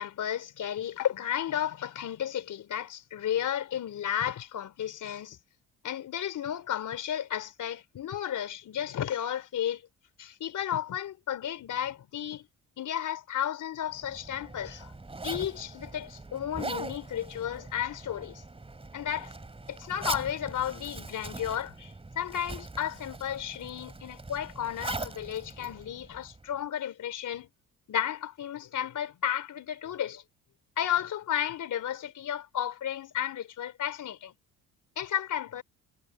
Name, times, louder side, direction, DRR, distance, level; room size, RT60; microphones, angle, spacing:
voice 1, 0.0-5.4 5.8-9.8 10.2-12.5 12.8-14.9 15.2-18.4 18.9-19.3 19.7-27.5 27.9-30.2 30.8-34.3 35.0-35.6, left 10 dB, 60° left, 3.8 m, -33 dB
Zipper (clothing), 13.9-26.5, right 2 dB, 15° right, 2.7 m, -41 dB
supercardioid pair, 80°, 34 cm